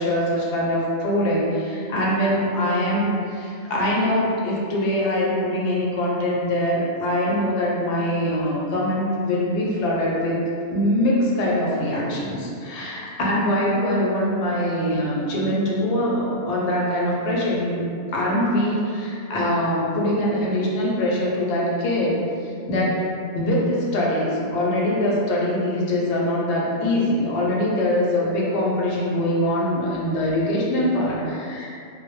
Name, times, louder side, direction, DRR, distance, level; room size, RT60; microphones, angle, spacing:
voice 1, 0.0-10.4 10.7-17.9 18.1-22.2 22.7-23.0 23.3-31.7, left 1 dB, 80° left, -4 dB, 0.9 m, -23 dB
2.1 x 2.1 x 2.9 m, 2.5 s
omnidirectional pair, 1.2 m